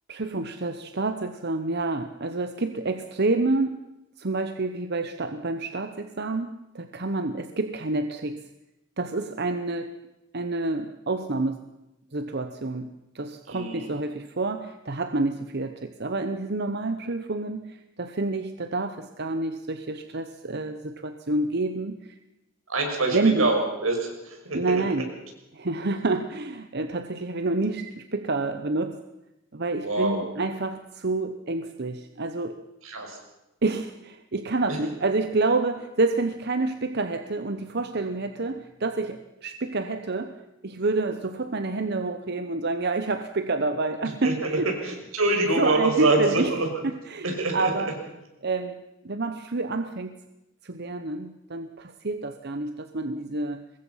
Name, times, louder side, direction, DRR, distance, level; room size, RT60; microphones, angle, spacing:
voice 1, 0.1-3.9 4.2-8.5 9.0-10.0 10.3-11.7 12.1-22.2 23.1-23.5 24.5-25.1 25.5-29.0 29.5-32.6 33.6-44.7 45.5-46.6 46.8-48.0 48.4-50.2 50.6-53.7, right 3 dB, 50° right, 8 dB, 1.0 m, -28 dB
voice 2, 13.5-13.9 22.7-24.8 29.8-30.2 32.8-33.2 44.2-44.6 44.8-46.7 47.2-47.7, right 2 dB, 80° right, 2 dB, 6.1 m, -25 dB
24.5 x 20.5 x 5.7 m, 0.95 s
head